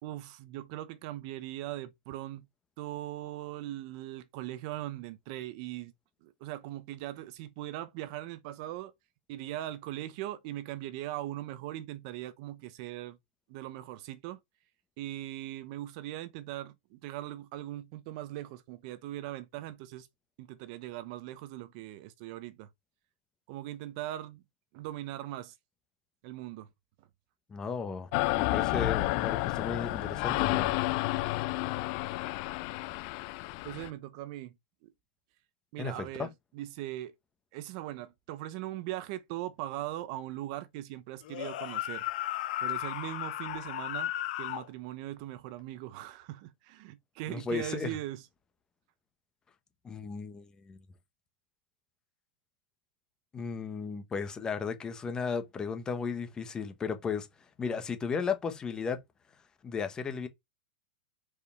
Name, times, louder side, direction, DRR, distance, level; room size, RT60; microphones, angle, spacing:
voice 1, 0.0-2.4 2.8-5.9 6.2-8.9 9.3-13.2 13.5-14.4 15.0-20.1 20.4-22.7 23.5-24.4 24.7-25.5 26.2-26.7 33.6-34.5 34.8-34.9 35.7-37.1 37.5-42.0 42.6-48.2, right 14 dB, 45° right, 0.9 m, -40 dB
voice 2, 27.5-28.1 28.4-30.7 35.8-36.3 47.3-48.0 49.8-50.8 53.3-57.3 57.6-59.0 59.6-60.3, left 5 dB, 15° left, 1.0 m, -35 dB
sound 1, 28.1-33.9, left 19 dB, 40° left, 0.4 m, -30 dB
sound 2, 41.2-44.7, left 14 dB, 55° left, 1.1 m, -35 dB
5.1 x 4.9 x 5.5 m
supercardioid pair, 155°, 5 cm